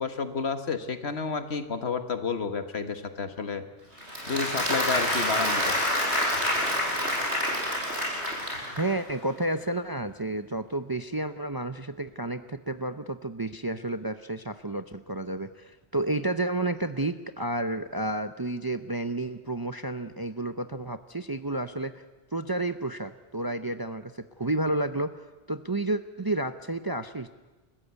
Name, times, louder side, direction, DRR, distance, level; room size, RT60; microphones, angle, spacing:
voice 1, 0.0-3.7 4.3-5.8, left 5 dB, 70° left, 8 dB, 1.7 m, -31 dB
Applause, 4.0-9.0, left 1 dB, 75° right, 6.0 m, -27 dB
voice 2, 8.8-22.0 22.3-27.3, right 2 dB, 25° right, 9 dB, 0.6 m, -31 dB
29.0 x 14.5 x 8.2 m, 1.2 s
omnidirectional pair, 1.1 m